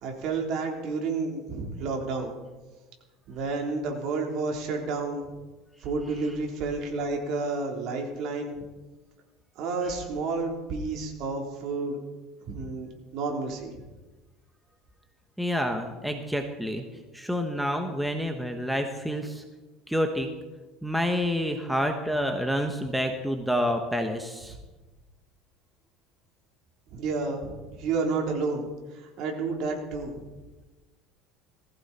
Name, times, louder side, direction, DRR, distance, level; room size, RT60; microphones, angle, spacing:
voice 1, 0.0-2.3 3.3-5.3 5.8-8.7 9.6-12.0 12.4-13.7 26.9-28.7 28.9-30.2, right 3 dB, 55° right, 1 dB, 3.7 m, -30 dB
voice 2, 15.4-16.8 17.1-19.4 19.9-20.3 20.8-24.5, equal, ahead, 4 dB, 1.2 m, -28 dB
20.0 x 15.5 x 4.4 m, 1.2 s
cardioid pair, 145°, 0 cm